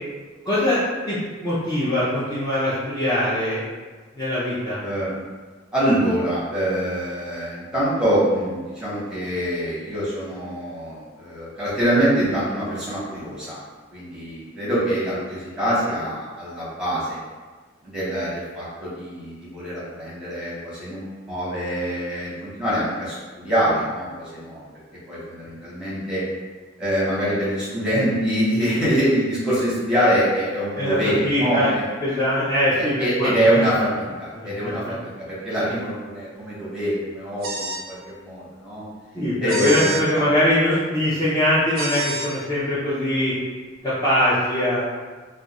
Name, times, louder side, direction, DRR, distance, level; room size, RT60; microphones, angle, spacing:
voice 1, 0.4-0.8 1.1-3.6 4.2-4.8 30.8-31.0 31.2-31.7 32.0-33.7 34.3-34.5 39.1-43.4 43.8-44.8, left 1 dB, 20° left, -11 dB, 0.6 m, -22 dB
voice 2, 5.7-13.6 13.9-17.2 17.8-24.1 24.3-24.6 25.1-26.2 26.8-31.9 32.8-35.0 35.3-38.8 39.4-40.0, equal, 5° right, -9 dB, 1.0 m, -24 dB
sound 1, 37.4-37.8 39.5-40.0 41.7-42.3, right 3 dB, 50° right, 0.4 m, -29 dB
2.4 x 2.3 x 4.0 m, 1.4 s
head